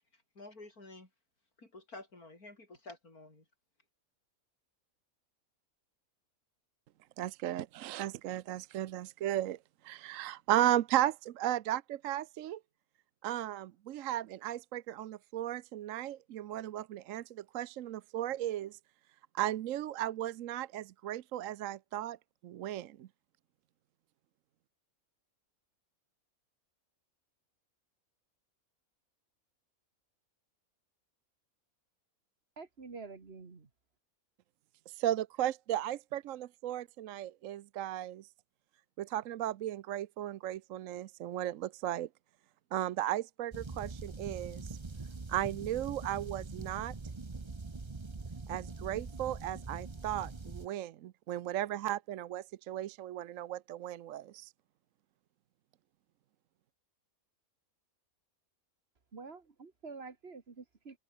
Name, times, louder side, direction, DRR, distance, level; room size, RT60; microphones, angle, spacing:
voice 1, 0.4-1.1 1.6-3.4, left 2 dB, 85° left, 6.4 m, -50 dB
voice 2, 7.2-9.6 9.8-12.6 13.2-18.8 19.3-22.2 22.4-23.1 35.0-38.3 39.0-42.1 42.7-44.8 45.3-46.9 48.5-54.5, right 12 dB, 70° right, 1.0 m, -35 dB
voice 3, 32.6-33.7 59.1-61.0, right 4 dB, 45° right, 2.1 m, -48 dB
sound 1, 43.5-50.7, right 3 dB, 20° right, 0.9 m, -43 dB
omnidirectional pair, 1.5 m